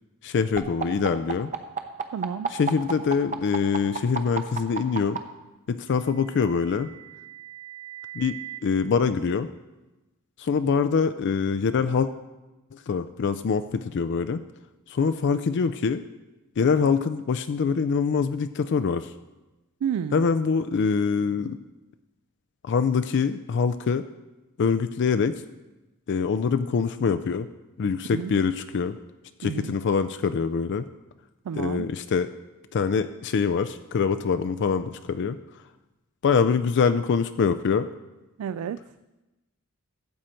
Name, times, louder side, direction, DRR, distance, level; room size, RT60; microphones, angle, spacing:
voice 1, 0.2-1.5 2.5-5.2 5.7-6.9 8.1-9.5 10.4-12.1 12.7-14.4 14.9-16.0 16.6-19.1 20.1-21.6 22.6-24.1 24.6-25.4 26.1-27.5 27.8-29.0 29.4-30.9 31.6-32.3 32.7-35.6 36.2-37.9, left 5 dB, 55° left, 11 dB, 0.4 m, -24 dB
sound 1, 0.6-5.2 6.3-8.6, right 5 dB, 35° right, 0.7 m, -32 dB
voice 2, 2.1-2.5 19.8-20.3 28.1-28.3 29.4-29.7 31.4-31.9 38.4-38.8, right 8 dB, 80° right, 13 dB, 0.3 m, -30 dB
14.0 x 7.7 x 4.3 m, 1.1 s
head